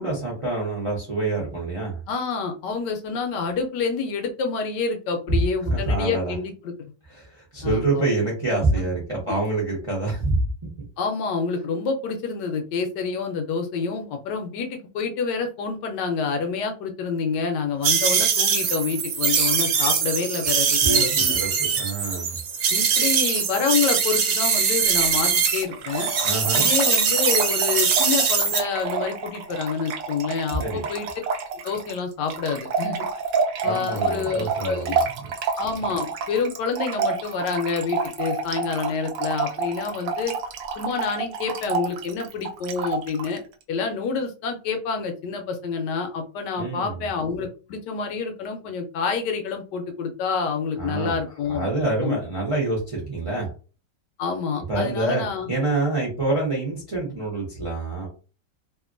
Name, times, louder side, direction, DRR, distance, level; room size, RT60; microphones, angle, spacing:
voice 1, 0.0-2.0 5.7-6.3 7.1-10.4 20.8-22.4 26.2-26.7 30.6-30.9 33.6-35.3 46.6-47.0 50.8-51.2 51.5-53.5 54.7-55.2 55.5-58.1, right 2 dB, 40° right, -3 dB, 0.4 m, -26 dB
voice 2, 2.1-6.9 7.6-8.1 8.7-8.9 11.0-21.3 22.7-26.1 26.5-31.1 31.6-33.0 33.6-35.0 35.6-40.3 40.8-43.4 43.7-52.2 54.2-55.5, left 5 dB, 75° left, 5 dB, 1.1 m, -28 dB
sound 1, 17.8-25.6 25.9-28.6, right 6 dB, 65° right, 1.0 m, -22 dB
Trickle dribble / Fill (with liquid), 24.9-43.4, right 5 dB, 85° right, 0.7 m, -29 dB
2.8 x 2.5 x 2.5 m, 0.36 s
omnidirectional pair, 2.0 m